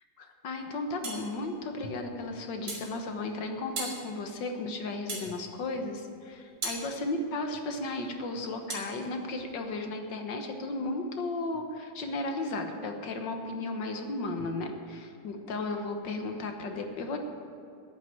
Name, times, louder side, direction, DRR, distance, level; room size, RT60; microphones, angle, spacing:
voice 1, 0.2-17.2, left 2 dB, 70° left, 4 dB, 1.8 m, -34 dB
sound 1, 1.0-1.3 2.7-2.9 3.8-4.0 5.1-5.3 6.6-6.8 8.7-8.9, right 3 dB, 85° right, 3.0 m, -35 dB
10.0 x 9.0 x 9.3 m, 2.6 s
omnidirectional pair, 2.1 m